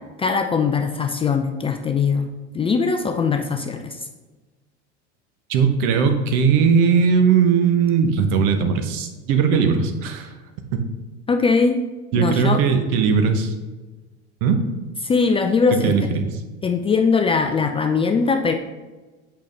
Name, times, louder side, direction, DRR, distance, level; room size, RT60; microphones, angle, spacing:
voice 1, 0.2-4.1 11.3-11.8 12.1-12.8 15.0-15.9 16.6-18.5, left 5 dB, 15° left, 5 dB, 0.4 m, -21 dB
voice 2, 5.5-10.3 10.7-10.8 12.1-13.5 14.4-14.6 15.8-16.3, right 6 dB, 55° right, 7 dB, 1.0 m, -18 dB
8.3 x 5.7 x 3.3 m, 1.2 s
figure-of-eight pair, 75°, 35 cm